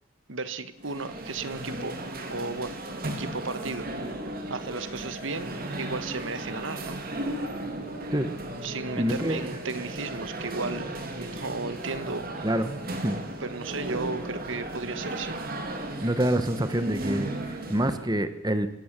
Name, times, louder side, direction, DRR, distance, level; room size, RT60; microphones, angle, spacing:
voice 1, 0.3-2.0 2.3-2.8 3.0-3.9 4.5-7.0 8.6-12.3 13.4-15.4, right 3 dB, 65° right, 12 dB, 1.4 m, -34 dB
sound 1, 0.8-18.1, right 1 dB, 45° right, 3.1 m, -35 dB
voice 2, 9.0-9.4 12.4-13.2 16.0-18.7, right 1 dB, 20° right, 11 dB, 1.2 m, -27 dB
25.0 x 16.5 x 7.5 m, 0.93 s
head